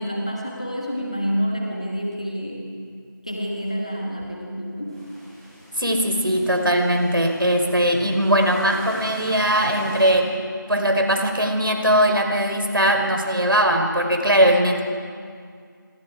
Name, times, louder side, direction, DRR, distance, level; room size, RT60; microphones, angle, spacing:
voice 1, 0.0-2.8 3.2-5.0, equal, 20° left, -1 dB, 1.8 m, -28 dB
sound 1, 4.9-10.1, equal, 15° right, 5.7 m, -41 dB
voice 2, 5.8-10.3 10.7-14.8, equal, 80° right, 3 dB, 4.9 m, -20 dB
26.5 x 26.5 x 4.9 m, 2.2 s
figure-of-eight pair, 180°, 12 cm